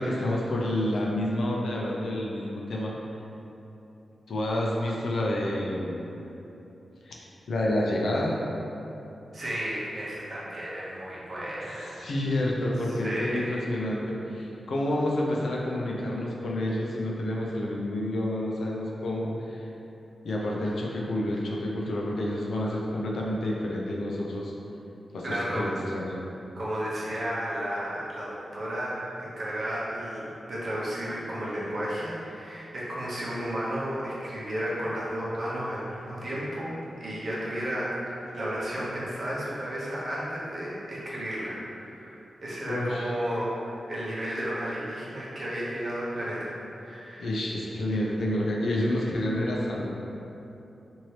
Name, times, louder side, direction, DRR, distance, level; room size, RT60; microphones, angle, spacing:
voice 1, 0.0-2.9 4.3-6.0 7.1-8.4 11.7-19.7 20.2-24.5 25.1-26.2 42.7-43.1 47.2-50.0, left 1 dB, 80° left, -3 dB, 0.4 m, -29 dB
voice 2, 9.3-11.9 12.9-13.7 25.2-25.7 26.6-30.2 30.5-47.3, equal, 50° right, -7 dB, 0.8 m, -33 dB
2.9 x 2.6 x 3.1 m, 2.9 s
wide cardioid pair, 105°, 0 cm